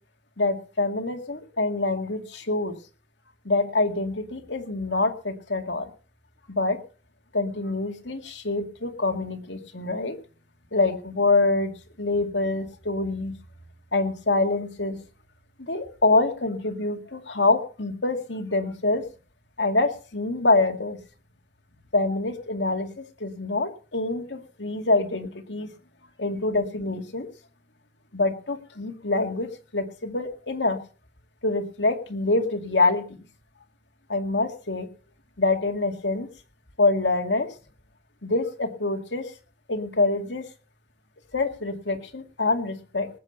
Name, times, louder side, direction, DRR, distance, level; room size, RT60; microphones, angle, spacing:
voice 1, 0.4-2.7 3.5-5.9 6.5-6.8 7.3-10.2 10.7-11.7 12.0-13.3 13.9-15.0 15.6-19.0 19.6-21.0 21.9-25.7 26.2-27.3 28.1-30.8 31.4-33.0 34.1-34.9 35.4-36.3 36.8-37.5 38.2-39.3 39.7-40.4 41.3-43.1, left 2 dB, 85° left, 5 dB, 2.2 m, -25 dB
19.5 x 8.5 x 5.4 m, 0.38 s
head